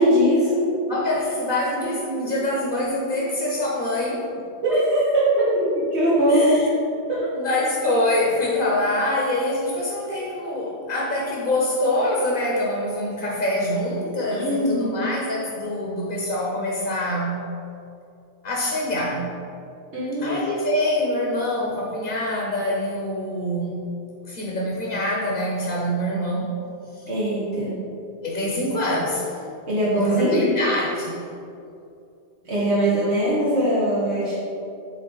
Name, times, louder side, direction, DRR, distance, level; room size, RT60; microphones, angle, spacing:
voice 1, 0.0-0.8 2.2-2.3 3.1-3.2 4.6-6.7 7.1-7.3 14.3-15.1 19.9-20.4 27.1-27.8 29.7-30.5 32.5-34.3, equal, 90° right, -10 dB, 1.8 m, -21 dB
voice 2, 0.9-4.3 6.3-6.7 7.3-17.5 18.4-19.3 20.2-23.9 24.2-26.5 26.9-27.0 28.2-29.4 30.0-31.3, left 1 dB, 55° left, -3 dB, 1.0 m, -25 dB
7.7 x 3.8 x 3.9 m, 2.6 s
omnidirectional pair, 1.1 m